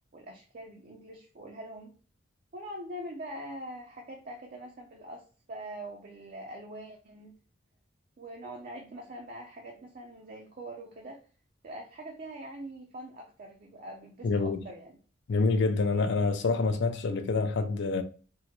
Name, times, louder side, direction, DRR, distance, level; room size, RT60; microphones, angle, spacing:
voice 1, 0.1-2.0 2.5-7.4 8.2-11.2 11.6-15.0, right 1 dB, 45° right, 0.5 m, -43 dB
voice 2, 14.2-14.6 15.3-18.0, left 3 dB, 60° left, 0.4 m, -27 dB
3.6 x 2.1 x 3.0 m
head